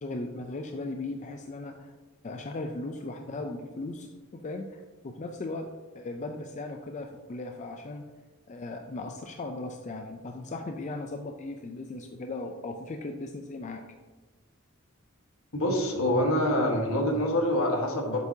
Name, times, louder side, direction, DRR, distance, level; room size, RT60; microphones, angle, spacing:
voice 1, 0.0-1.9 2.2-5.7 5.9-8.0 8.5-13.8, left 2 dB, 35° left, 4 dB, 0.4 m, -37 dB
voice 2, 15.5-18.2, left 1 dB, 65° left, 1 dB, 1.4 m, -25 dB
8.0 x 7.2 x 2.7 m, 1.3 s
head